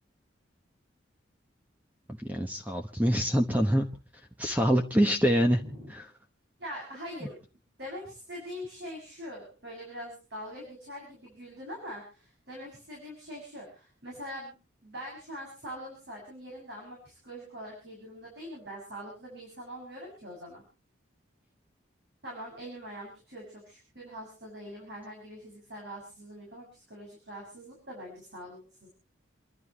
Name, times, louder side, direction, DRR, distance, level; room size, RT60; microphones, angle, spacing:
voice 1, 2.2-3.9 4.4-5.6 5.9-6.1 7.2-7.3, equal, 10° right, 4 dB, 1.0 m, -25 dB
voice 2, 5.6-5.9 6.6-7.4 7.8-14.6 14.8-20.6 22.2-28.9, equal, 60° right, -2 dB, 7.1 m, -43 dB
29.0 x 12.0 x 3.1 m, 0.35 s
head